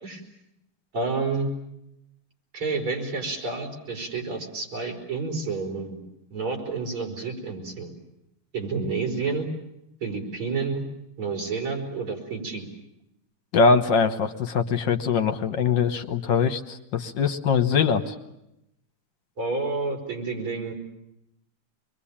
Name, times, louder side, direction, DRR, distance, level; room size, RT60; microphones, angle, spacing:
voice 1, 0.9-1.5 2.5-6.0 6.3-7.9 8.5-9.5 10.0-10.8 11.2-12.7 19.4-20.7, right 4 dB, 85° right, 0 dB, 5.7 m, -29 dB
voice 2, 13.5-18.1, left 5 dB, 60° left, 8 dB, 1.7 m, -22 dB
25.5 x 22.5 x 8.7 m, 0.86 s
omnidirectional pair, 2.3 m